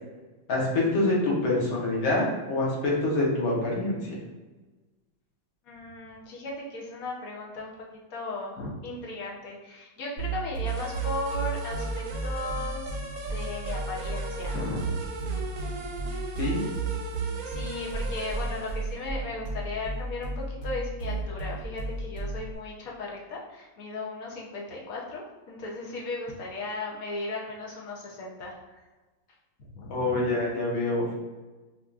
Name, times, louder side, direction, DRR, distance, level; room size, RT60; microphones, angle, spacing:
voice 1, 0.5-4.0 16.4-16.6 29.9-31.1, left 2 dB, 90° left, -4 dB, 1.9 m, -26 dB
voice 2, 5.6-7.7 8.1-12.9 13.3-14.9 17.4-28.8 29.6-30.2, left 2 dB, 60° left, -3 dB, 1.0 m, -36 dB
sound 1, 10.2-22.5, right 3 dB, 45° left, 1.5 m, -32 dB
sound 2, 10.7-18.9, right 3 dB, 75° right, 1.3 m, -39 dB
4.9 x 2.7 x 2.4 m, 1.2 s
omnidirectional pair, 2.1 m